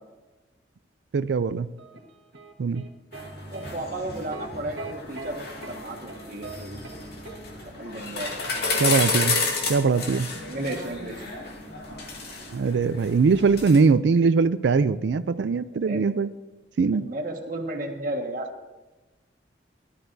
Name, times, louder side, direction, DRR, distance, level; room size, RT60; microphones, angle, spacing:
voice 1, 1.1-1.7 2.6-2.8 8.8-9.4 9.7-10.3 12.5-16.3 16.8-17.0, right 4 dB, 75° right, 14 dB, 0.4 m, -21 dB
sound 1, 1.8-3.3 3.5-3.7 4.3-4.5 4.8-5.3 5.6-5.8 6.1-6.6 6.8-7.0 7.3-7.4, right 4 dB, 90° right, 1.3 m, -41 dB
sound 2, 3.1-13.8, left 3 dB, 60° left, 2.1 m, -31 dB
voice 2, 3.5-6.8 7.8-8.4 10.4-11.2 15.7-16.1 16.9-18.5, right 1 dB, 50° right, 2 dB, 1.6 m, -33 dB
17.5 x 12.0 x 2.7 m, 1.1 s
head